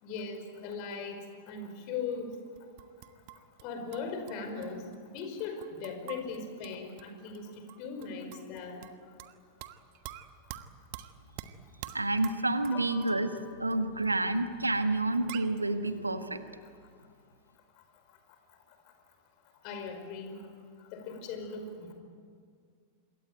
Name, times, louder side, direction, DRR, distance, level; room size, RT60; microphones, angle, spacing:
voice 1, 0.0-2.4 3.6-8.8 12.7-13.4 19.6-20.4 20.9-21.9, left 5 dB, 45° left, 6 dB, 5.1 m, -39 dB
sound 1, 2.3-3.6 3.9-7.1 7.3-7.4 7.7-9.4 9.6-13.4 13.7-13.8 14.0-14.1 14.7-14.8 15.0-15.1 15.3-15.6, right 14 dB, 45° right, 1.3 m, -46 dB
voice 2, 11.9-13.3 13.6-16.4, right 2 dB, 80° right, 9 dB, 1.6 m, -29 dB
27.0 x 22.0 x 9.2 m, 2.1 s
figure-of-eight pair, 90°, 0 cm